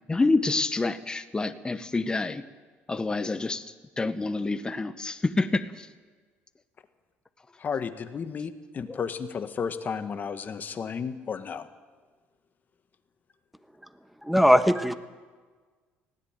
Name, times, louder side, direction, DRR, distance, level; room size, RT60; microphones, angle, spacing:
voice 1, 0.1-2.4 2.9-3.6 4.0-5.9 8.9-9.0, left 3 dB, 20° left, 12 dB, 1.1 m, -27 dB
voice 2, 7.6-11.7, left 6 dB, 40° left, 9 dB, 1.7 m, -33 dB
voice 3, 14.2-14.9, equal, ahead, 11 dB, 1.2 m, -19 dB
19.5 x 16.5 x 9.2 m, 1.4 s
supercardioid pair, 95°, 5 cm